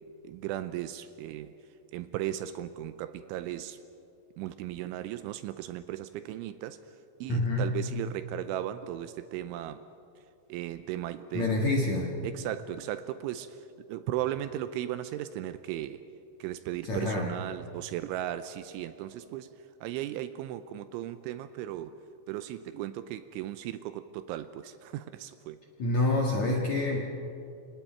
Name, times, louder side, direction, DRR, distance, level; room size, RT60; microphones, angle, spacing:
voice 1, 0.2-1.5 1.9-3.8 4.4-6.8 7.2-9.8 10.5-11.5 12.2-16.0 16.4-19.5 19.8-22.0 22.3-25.6, right 12 dB, 80° right, 11 dB, 2.9 m, -36 dB
voice 2, 7.3-7.8 11.3-12.1 16.9-17.3 25.8-27.0, left 2 dB, 55° left, -1 dB, 2.1 m, -27 dB
29.0 x 26.0 x 4.5 m, 2.6 s
omnidirectional pair, 5.8 m